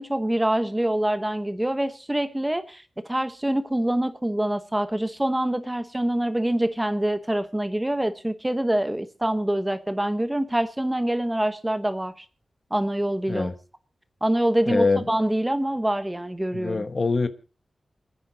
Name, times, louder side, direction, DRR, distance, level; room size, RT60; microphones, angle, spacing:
voice 1, 0.0-2.8 3.1-12.2 12.7-13.5 14.2-16.8, right 1 dB, 10° right, 1.1 m, -25 dB
voice 2, 14.7-15.1 16.5-17.3, left 3 dB, 45° left, 1.1 m, -23 dB
28.0 x 9.8 x 2.9 m
wide cardioid pair, 100°, 0 cm